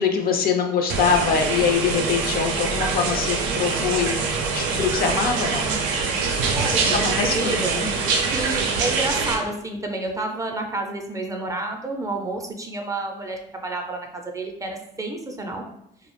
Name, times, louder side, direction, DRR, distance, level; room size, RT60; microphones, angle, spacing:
voice 1, 0.0-4.2 4.5-5.8 7.0-7.9, left 6 dB, 55° left, 5 dB, 0.4 m, -23 dB
sound 1, 0.9-9.3, right 4 dB, 85° right, 0.4 m, -24 dB
voice 2, 6.6-7.9 8.3-15.6, right 2 dB, 15° right, 2 dB, 0.4 m, -30 dB
2.4 x 2.0 x 3.0 m, 0.77 s
supercardioid pair, 75°, 19 cm